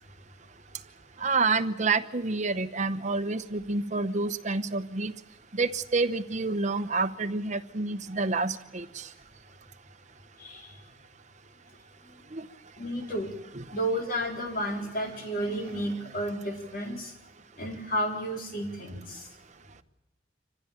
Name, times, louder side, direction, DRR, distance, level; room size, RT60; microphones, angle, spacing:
voice 1, 1.2-5.1 5.5-8.8 12.3-12.5 13.5-13.6, right 3 dB, 40° right, 10 dB, 1.0 m, -28 dB
voice 2, 12.8-13.3 13.7-17.1 17.6-19.2, equal, 55° left, 3 dB, 4.2 m, -32 dB
26.0 x 15.5 x 8.8 m, 1.0 s
head